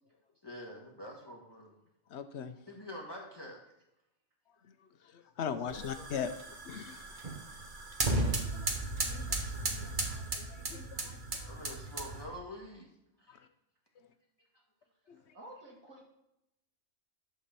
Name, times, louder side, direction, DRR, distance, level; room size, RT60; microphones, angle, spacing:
voice 1, 0.4-1.7 2.7-3.6 11.5-12.9 13.2-13.4, left 1 dB, 20° left, -1 dB, 1.7 m, -46 dB
voice 2, 2.1-2.5 5.4-6.3 6.7-7.0 8.1-8.7 9.1-9.4 9.7-11.5, left 7 dB, 60° left, 10 dB, 0.9 m, -40 dB
sound 1, 5.7-12.4, right 2 dB, 40° right, 1.3 m, -35 dB
voice 3, 5.7-6.5 15.3-16.0, right 1 dB, 75° right, -1 dB, 2.6 m, -52 dB
12.0 x 4.3 x 6.8 m, 0.85 s
omnidirectional pair, 1.4 m